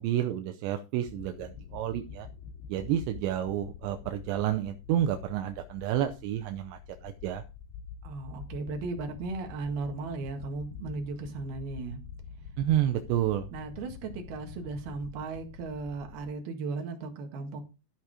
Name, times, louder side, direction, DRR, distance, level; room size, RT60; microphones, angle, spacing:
voice 1, 0.0-2.3 2.7-7.4 12.6-13.5, right 11 dB, 80° right, 3.0 m, -30 dB
sound 1, 1.0-16.3, left 7 dB, 80° left, 3.0 m, -46 dB
voice 2, 8.0-12.0 13.5-17.6, right 3 dB, 65° right, 3.4 m, -36 dB
13.0 x 6.0 x 4.9 m
omnidirectional pair, 5.1 m